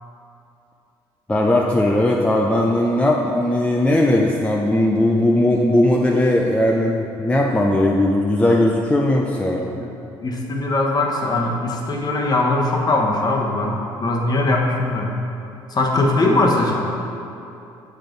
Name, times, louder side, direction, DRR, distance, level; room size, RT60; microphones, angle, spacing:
voice 1, 1.3-9.7, left 1 dB, 10° left, -1 dB, 0.6 m, -18 dB
voice 2, 9.6-9.9 10.2-15.1 15.7-16.9, left 2 dB, 40° left, 0 dB, 1.1 m, -20 dB
7.4 x 5.1 x 3.9 m, 2.7 s
supercardioid pair, 75°, 10 cm